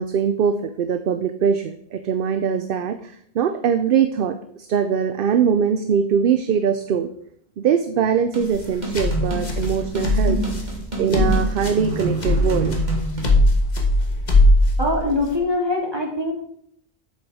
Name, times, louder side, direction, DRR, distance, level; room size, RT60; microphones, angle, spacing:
voice 1, 0.0-7.1 7.6-10.4 11.0-12.8, right 7 dB, 60° right, 9 dB, 0.7 m, -22 dB
sound 1, 8.3-13.3, right 2 dB, 40° right, 2.6 m, -28 dB
sound 2, 8.4-15.4, left 1 dB, 40° left, 1.5 m, -20 dB
voice 2, 14.8-16.3, left 2 dB, 20° right, -2 dB, 2.5 m, -23 dB
7.8 x 6.9 x 4.8 m, 0.68 s
omnidirectional pair, 1.1 m